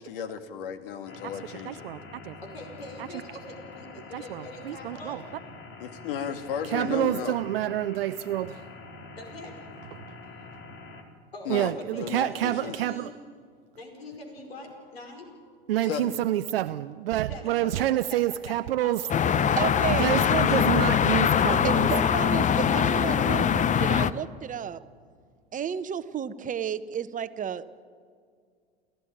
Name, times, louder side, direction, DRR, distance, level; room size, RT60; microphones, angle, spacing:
voice 1, 0.0-1.9 5.8-7.4 11.5-12.8 15.8-16.2, left 8 dB, 65° left, 9 dB, 2.0 m, -34 dB
sound 1, 1.1-11.0, left 3 dB, 45° left, 4.1 m, -45 dB
voice 2, 1.7-2.4 3.0-3.1 4.1-5.2 6.7-8.7 9.9-10.0 11.5-13.1 15.7-19.1 20.0-21.9, right 13 dB, 70° right, 12 dB, 0.6 m, -28 dB
voice 3, 2.4-5.2 9.2-9.5 11.3-13.1 13.7-15.3 17.3-20.7 22.7-22.8, left 2 dB, 85° left, 3 dB, 5.0 m, -44 dB
sound 2, 19.1-24.1, left 8 dB, 25° left, 0.8 m, -22 dB
voice 4, 19.6-20.1 21.6-24.8 25.5-27.7, right 8 dB, 25° right, 12 dB, 1.1 m, -32 dB
30.0 x 14.0 x 8.8 m, 2.1 s
figure-of-eight pair, 80°, 30 cm